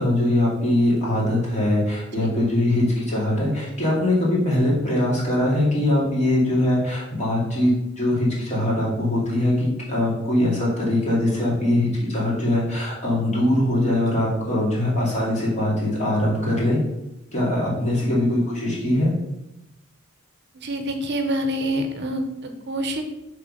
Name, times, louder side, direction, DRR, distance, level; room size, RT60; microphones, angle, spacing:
voice 1, 0.0-16.8 17.3-19.1, left 1 dB, 35° left, -5 dB, 2.4 m, -22 dB
voice 2, 20.5-23.0, equal, 60° right, 5 dB, 0.8 m, -26 dB
6.5 x 3.4 x 5.5 m, 0.91 s
head